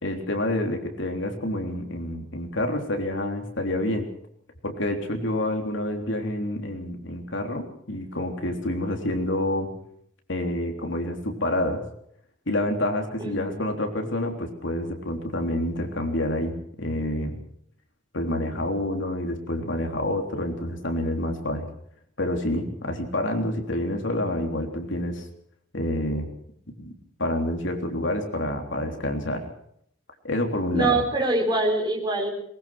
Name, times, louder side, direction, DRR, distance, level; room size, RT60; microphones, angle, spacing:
voice 1, 0.0-4.1 4.6-9.7 10.3-11.8 12.5-17.4 18.1-21.7 22.2-25.3 25.7-26.3 26.8-26.9 27.2-29.4 30.2-31.0, left 1 dB, 65° left, 4 dB, 3.6 m, -28 dB
voice 2, 13.2-13.6 30.7-32.3, right 2 dB, 20° right, 1 dB, 4.9 m, -24 dB
22.0 x 21.0 x 6.1 m, 0.70 s
head